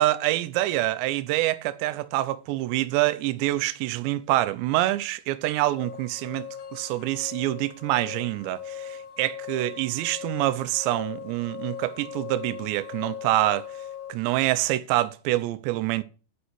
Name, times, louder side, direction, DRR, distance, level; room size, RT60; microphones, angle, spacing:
voice 1, 0.0-13.7 14.1-16.0, right 16 dB, 80° right, 2.9 m, -26 dB
sound 1, 5.7-14.1, left 8 dB, 55° left, 3.9 m, -39 dB
11.5 x 5.6 x 8.0 m
omnidirectional pair, 5.2 m